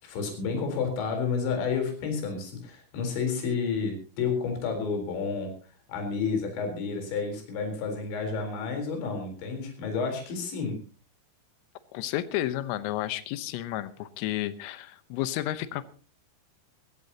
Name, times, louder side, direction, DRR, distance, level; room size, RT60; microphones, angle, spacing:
voice 1, 0.0-5.5 5.9-10.8, left 5 dB, 60° left, 4 dB, 6.0 m, -30 dB
voice 2, 11.9-15.9, left 14 dB, 80° left, 13 dB, 3.6 m, -31 dB
21.5 x 16.0 x 2.9 m, 0.36 s
omnidirectional pair, 5.9 m